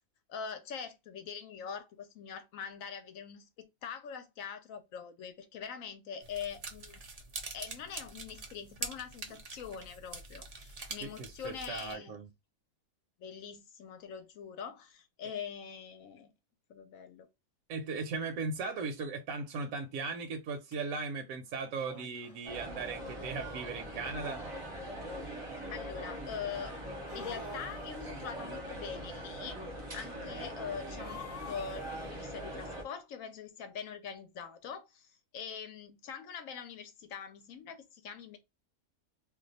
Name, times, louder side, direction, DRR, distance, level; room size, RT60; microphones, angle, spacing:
voice 1, 0.3-7.0 7.5-12.2 13.2-16.3 16.7-17.3 25.7-26.8 27.1-29.6 29.9-38.4, left 7 dB, 70° left, 1.0 m, -43 dB
sound 1, 6.2-12.0, right 3 dB, 55° right, 0.4 m, -45 dB
voice 2, 11.0-12.3 17.7-24.4, right 4 dB, 70° right, 1.0 m, -38 dB
sound 2, 20.7-20.8 21.7-22.5 23.6-24.4 27.0-28.1 31.0-32.1, left 4 dB, 45° left, 0.4 m, -48 dB
sound 3, 22.4-32.8, right 1 dB, 30° right, 0.7 m, -42 dB
2.5 x 2.2 x 3.9 m
omnidirectional pair, 1.5 m